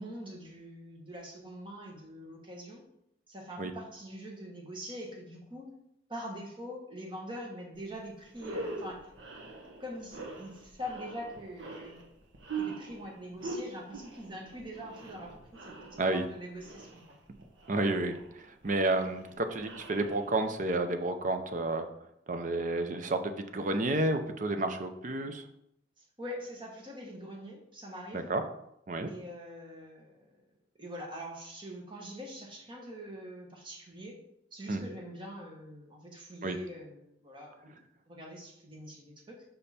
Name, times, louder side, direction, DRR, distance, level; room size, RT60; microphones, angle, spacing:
voice 1, 0.0-2.8 3.3-5.7 6.1-9.1 9.8-12.0 12.5-15.8 16.1-17.2 26.0-28.3 29.1-30.4 30.8-34.2 34.5-39.4, equal, 25° right, 0 dB, 1.3 m, -44 dB
sound 1, 7.8-7.9 8.3-20.7, right 3 dB, 85° right, 1.2 m, -43 dB
voice 2, 17.7-21.9 22.3-25.4 28.1-28.4 28.9-29.1 34.7-34.8 36.4-36.6, right 2 dB, 45° right, 7 dB, 0.6 m, -31 dB
5.5 x 5.3 x 4.3 m, 0.77 s
head